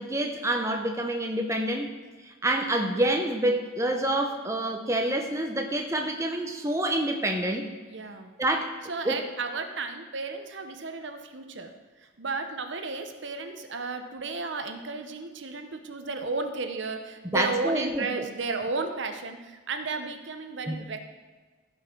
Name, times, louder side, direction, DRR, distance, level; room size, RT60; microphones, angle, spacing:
voice 1, 0.0-1.9 2.2-7.7 8.4-8.7 9.0-9.2 17.3-18.2 20.7-20.8, right 1 dB, 15° right, 3 dB, 0.7 m, -27 dB
voice 2, 7.9-8.3 8.9-11.7 12.2-21.1, right 3 dB, 60° right, 6 dB, 0.9 m, -33 dB
15.5 x 5.5 x 4.6 m, 1.4 s
head